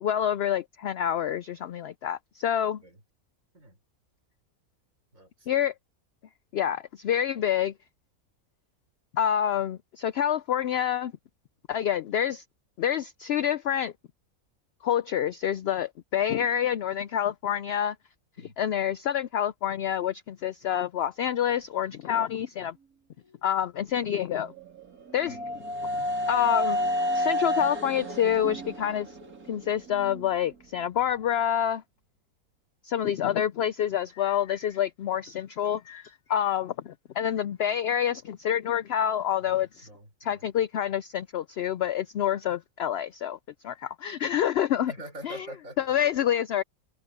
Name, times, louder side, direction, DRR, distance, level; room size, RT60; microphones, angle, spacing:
voice 1, 0.0-2.8 5.5-5.7 6.5-7.7 9.1-11.1 11.7-12.4 12.8-13.9 14.8-18.0 18.4-22.7 23.4-24.5 25.1-25.4 26.3-26.8 27.1-29.2 29.5-31.8 32.8-39.9 40.2-43.4 43.6-44.9 45.2-45.5 45.8-46.6, left 10 dB, 70° left, 0.6 m, -27 dB
voice 2, 2.5-3.0 3.5-3.8 5.1-5.6 18.4-18.8 25.2-25.6 39.4-40.5 44.9-46.0, right 1 dB, 60° right, 6.3 m, -46 dB
sound 1, 24.4-30.3, left 1 dB, 75° right, 3.6 m, -30 dB
omnidirectional pair, 1.5 m